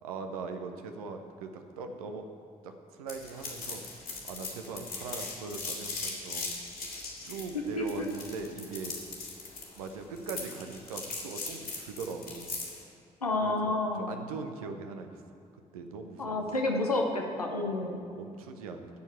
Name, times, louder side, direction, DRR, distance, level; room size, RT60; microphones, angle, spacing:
voice 1, 0.0-2.3 2.6-3.8 4.2-6.5 7.2-9.0 9.8-12.5 13.4-15.2 15.7-16.4 17.8-18.9, right 4 dB, 75° right, 6 dB, 0.7 m, -40 dB
sound 1, 3.1-12.8, left 3 dB, 50° left, 2.4 m, -39 dB
voice 2, 7.8-8.1 13.2-14.2 16.2-18.0, left 2 dB, 90° left, 1 dB, 0.7 m, -30 dB
13.5 x 4.5 x 7.8 m, 2.5 s
figure-of-eight pair, 40°, 19 cm